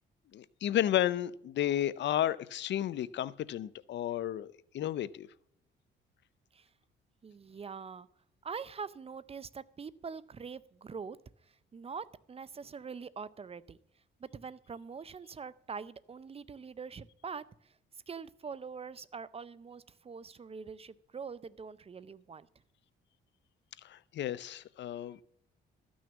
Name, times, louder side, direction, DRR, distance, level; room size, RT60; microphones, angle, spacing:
voice 1, 0.3-5.3 23.8-25.2, left 11 dB, 65° left, 0.5 m, -32 dB
voice 2, 7.2-8.1 8.4-11.2 11.7-13.8 14.2-17.8 18.1-22.5, right 5 dB, 30° right, 0.5 m, -44 dB
13.5 x 6.3 x 7.0 m
cardioid pair, 90°, 20 cm